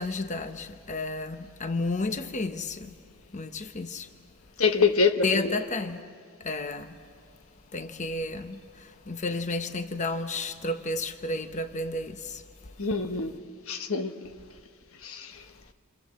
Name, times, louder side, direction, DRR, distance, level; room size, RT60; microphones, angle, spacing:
voice 1, 0.0-2.9 3.3-4.1 5.2-6.0 6.4-6.9 7.7-12.4, left 2 dB, 35° left, 0.9 m, -32 dB
voice 2, 4.6-5.5 12.8-13.3 13.7-14.1 15.0-15.3, left 4 dB, 65° left, 1.3 m, -25 dB
28.5 x 27.0 x 7.7 m
head